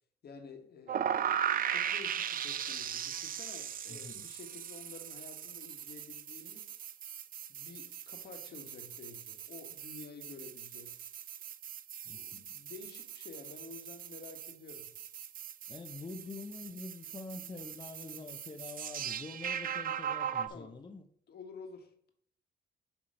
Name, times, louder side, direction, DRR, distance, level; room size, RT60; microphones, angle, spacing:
voice 1, 0.2-1.4 1.7-6.8 7.5-11.0 12.1-14.9 20.5-20.8 21.3-21.9, left 4 dB, 55° left, 1.3 m, -51 dB
sound 1, 0.9-20.5, right 9 dB, 45° right, 0.4 m, -39 dB
voice 2, 3.9-4.2 12.0-12.5 15.7-21.0, left 3 dB, 20° left, 0.6 m, -46 dB
7.5 x 3.0 x 5.1 m
cardioid pair, 90°, 20 cm